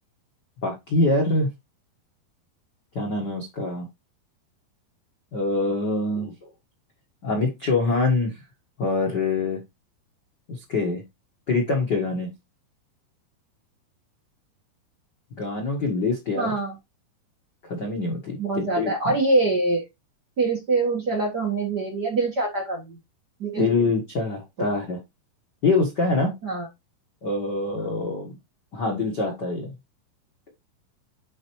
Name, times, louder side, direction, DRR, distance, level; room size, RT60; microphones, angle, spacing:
voice 1, 0.6-1.5 2.9-3.9 5.3-6.3 7.2-8.3 8.8-9.6 10.5-11.0 11.5-12.3 15.4-16.5 17.7-19.1 23.6-25.0 25.6-26.3 27.2-28.3 28.7-29.7, left 3 dB, 65° left, 1 dB, 1.0 m, -24 dB
voice 2, 16.4-16.7 18.4-19.9 20.4-23.0 23.4-23.7 26.4-26.7, right 3 dB, 50° right, -1 dB, 1.2 m, -24 dB
10.5 x 4.1 x 3.1 m, 0.21 s
omnidirectional pair, 4.4 m